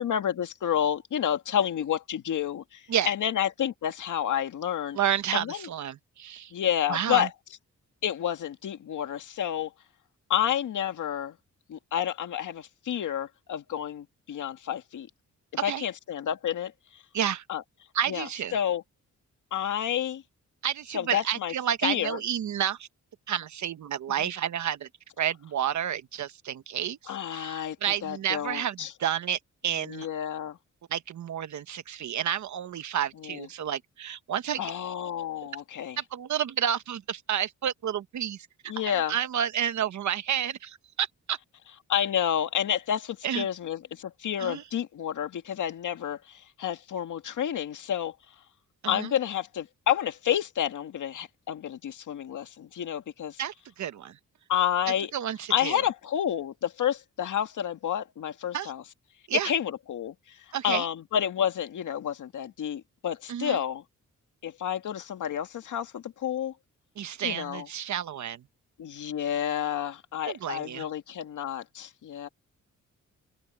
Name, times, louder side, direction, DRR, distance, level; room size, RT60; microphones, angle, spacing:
voice 1, 0.0-5.0 5.3-5.7 6.5-7.3 8.0-9.7 10.3-11.4 11.7-15.1 15.6-16.7 17.5-17.6 18.1-18.3 18.5-18.8 19.5-20.2 20.9-21.5 21.8-22.2 24.2-24.3 27.1-27.8 28.0-28.9 29.8-30.6 33.2-33.5 34.6-36.0 38.7-39.2 41.9-48.1 48.9-53.4 54.5-55.1 55.5-58.8 59.3-60.4 60.6-63.8 64.4-66.5 67.2-67.7 68.8-72.3, left 10 dB, 80° left, 1.9 m, -30 dB
voice 2, 4.9-6.5 6.9-7.3 15.6-15.8 17.1-17.4 17.9-18.6 20.6-22.9 23.3-24.9 25.2-30.1 30.9-34.7 36.0-41.4 43.2-43.5 44.4-44.6 48.8-49.1 53.4-54.2 55.1-55.8 58.5-58.7 59.3-59.5 60.5-60.9 63.3-63.6 67.0-68.4 70.3-70.9, right 9 dB, 70° right, 1.1 m, -30 dB
wide cardioid pair, 135°, 30 cm